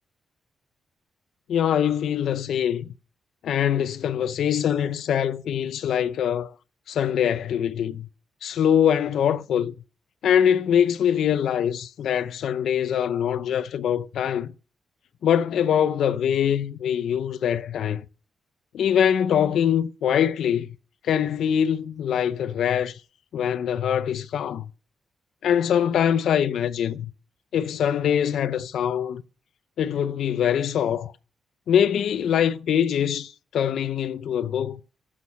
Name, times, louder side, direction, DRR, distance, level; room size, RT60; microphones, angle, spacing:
voice 1, 1.5-2.9 3.4-6.5 6.9-8.1 8.4-9.7 10.2-14.5 15.2-18.0 18.7-20.7 21.0-23.0 23.3-24.6 25.4-27.1 27.5-29.2 29.8-31.1 31.7-34.8, left 9 dB, 80° left, 0.6 m, -23 dB
12.5 x 7.4 x 5.6 m
cardioid pair, 110°, 0 cm